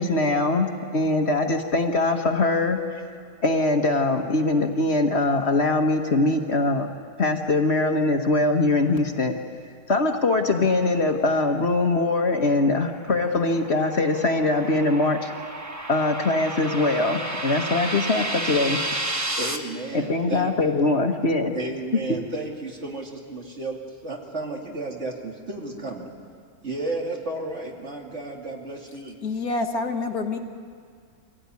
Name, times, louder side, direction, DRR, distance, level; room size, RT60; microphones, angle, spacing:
voice 1, 0.0-2.8 3.4-6.9 7.2-9.3 9.9-15.3 15.9-18.8 19.9-21.5 21.9-22.2, left 2 dB, 45° left, 4 dB, 1.6 m, -22 dB
sound 1, 12.7-19.6, right 1 dB, 10° right, 1.3 m, -32 dB
voice 2, 19.4-20.5 21.5-26.1 26.6-29.2, right 2 dB, 50° right, 0 dB, 2.9 m, -33 dB
voice 3, 29.2-30.4, left 3 dB, 75° left, 4 dB, 1.9 m, -27 dB
24.5 x 17.0 x 9.6 m, 2.1 s
omnidirectional pair, 1.6 m